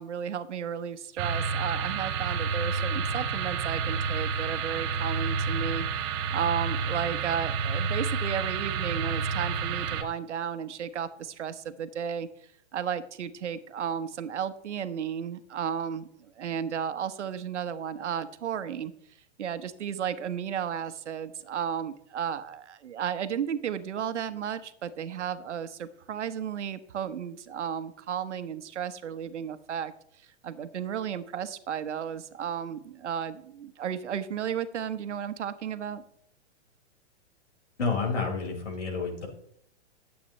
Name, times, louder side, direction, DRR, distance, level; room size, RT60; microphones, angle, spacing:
voice 1, 0.0-12.3 12.7-18.9 19.4-29.9 30.4-36.0, right 8 dB, 85° right, 11 dB, 1.2 m, -33 dB
sound 1, 1.2-10.0, right 5 dB, 45° right, 1.9 m, -29 dB
voice 2, 37.8-39.3, left 4 dB, 90° left, -1 dB, 5.2 m, -29 dB
20.0 x 8.5 x 3.2 m, 0.68 s
hypercardioid pair, 135°, 35 cm